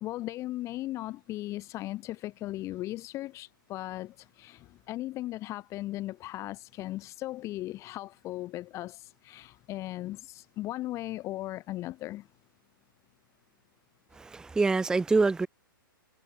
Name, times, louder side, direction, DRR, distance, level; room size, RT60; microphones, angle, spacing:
voice 1, 0.0-12.3, left 16 dB, 25° left, 0.8 m, -37 dB
voice 2, 14.1-15.5, right 3 dB, 5° right, 0.7 m, -25 dB
figure-of-eight pair, 120°, 12 cm